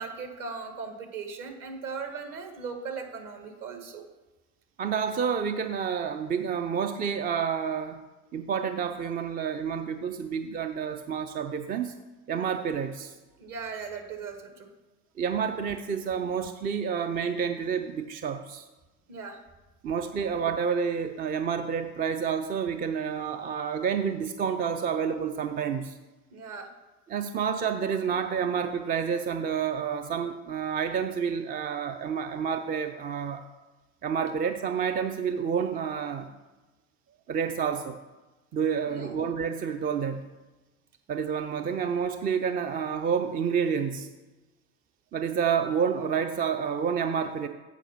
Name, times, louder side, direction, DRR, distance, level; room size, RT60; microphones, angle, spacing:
voice 1, 0.0-4.0 13.4-14.7 19.1-19.4 26.3-26.7 38.8-39.1, right 5 dB, 45° right, 4 dB, 1.6 m, -38 dB
voice 2, 4.8-8.0 8.3-12.0 12.3-13.1 15.2-18.7 19.8-26.0 27.1-33.4 34.0-36.3 37.3-38.0 38.5-40.3 41.1-44.1 45.1-47.5, right 7 dB, 20° right, 7 dB, 0.4 m, -29 dB
8.0 x 4.9 x 5.8 m, 1.1 s
figure-of-eight pair, 55°, 45 cm